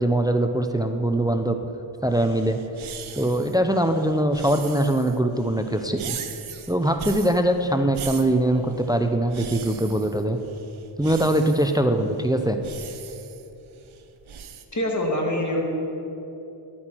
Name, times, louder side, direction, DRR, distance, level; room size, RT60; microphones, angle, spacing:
voice 1, 0.0-1.6 2.0-2.6 3.2-6.2 6.7-10.4 11.0-12.6, right 1 dB, 10° right, 7 dB, 0.4 m, -22 dB
sound 1, 2.1-14.6, right 7 dB, 70° right, 0.7 m, -40 dB
voice 2, 14.7-15.6, left 1 dB, 35° left, 0 dB, 1.7 m, -24 dB
11.5 x 8.6 x 4.4 m, 3.0 s
wide cardioid pair, 90°, 50 cm